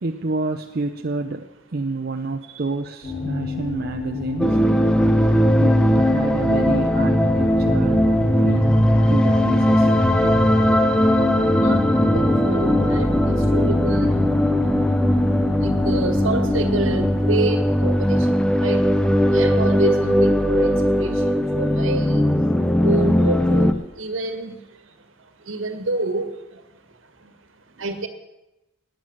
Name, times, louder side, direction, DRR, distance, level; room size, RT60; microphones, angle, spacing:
voice 1, 0.0-4.6 5.6-8.0 8.4-8.7 9.1-10.4 10.8-11.0, right 3 dB, 50° right, 5 dB, 0.6 m, -29 dB
sound 1, 3.0-17.1, left 4 dB, 50° left, 5.8 m, -29 dB
sound 2, 4.4-23.7, equal, 5° left, 0.6 m, -19 dB
voice 2, 12.1-14.1 15.6-18.3 18.6-18.8 19.3-22.2 22.8-23.7 24.0-24.6 25.5-26.3 27.8-28.1, right 2 dB, 75° right, 8 dB, 1.8 m, -27 dB
12.5 x 9.5 x 8.8 m, 0.98 s
head